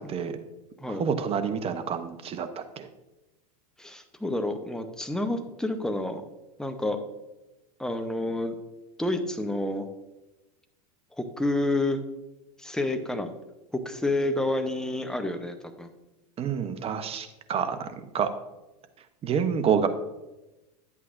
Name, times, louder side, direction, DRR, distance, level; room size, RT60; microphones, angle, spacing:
voice 1, 0.9-2.9 16.4-17.9 18.1-18.3 19.2-19.9, right 7 dB, 30° right, 9 dB, 0.8 m, -28 dB
voice 2, 3.8-6.2 6.6-7.0 7.8-8.5 9.0-9.9 11.2-12.0 12.6-13.3 13.7-15.9, left 2 dB, 5° left, 7 dB, 0.8 m, -29 dB
11.0 x 8.3 x 2.6 m, 1.0 s
hypercardioid pair, 105°, 20 cm